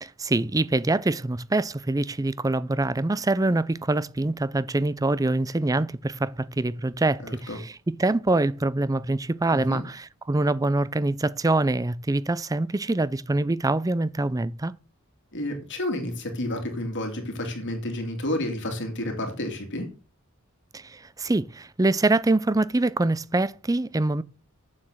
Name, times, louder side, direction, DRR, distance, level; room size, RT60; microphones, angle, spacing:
voice 1, 0.0-14.8 20.7-24.2, right 2 dB, 15° right, 0.5 m, -25 dB
voice 2, 7.2-7.6 9.5-9.8 15.3-19.9, left 1 dB, 60° left, 2.7 m, -30 dB
9.0 x 7.3 x 6.4 m
head